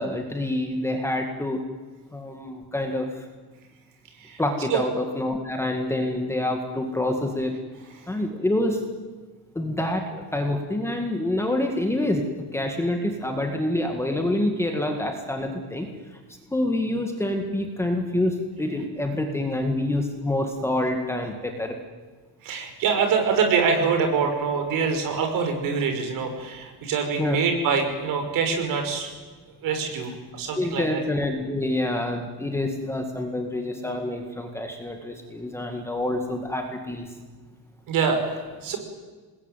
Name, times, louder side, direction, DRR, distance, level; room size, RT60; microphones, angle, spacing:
voice 1, 0.0-1.7 2.1-3.1 4.4-7.6 8.1-8.8 9.6-12.3 12.5-15.9 16.5-21.8 27.2-27.4 30.6-37.1, left 1 dB, 5° left, 3 dB, 1.9 m, -27 dB
voice 2, 22.4-29.1 29.6-31.0 37.9-38.8, right 5 dB, 55° right, 5 dB, 5.5 m, -25 dB
26.5 x 20.5 x 9.2 m, 1.4 s
cardioid pair, 180°, 41 cm